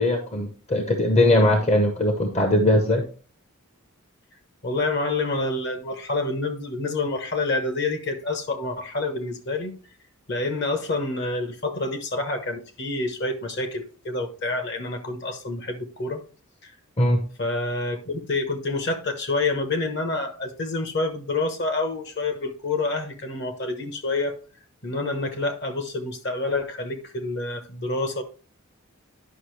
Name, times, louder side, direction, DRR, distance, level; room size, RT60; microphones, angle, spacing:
voice 1, 0.0-3.0 17.0-17.2, left 1 dB, 30° left, 0.8 m, -20 dB
voice 2, 4.6-9.7 10.3-16.2 16.6-16.7 17.4-24.4 24.8-28.2, left 2 dB, 50° left, 1.2 m, -28 dB
9.9 x 5.6 x 3.2 m
head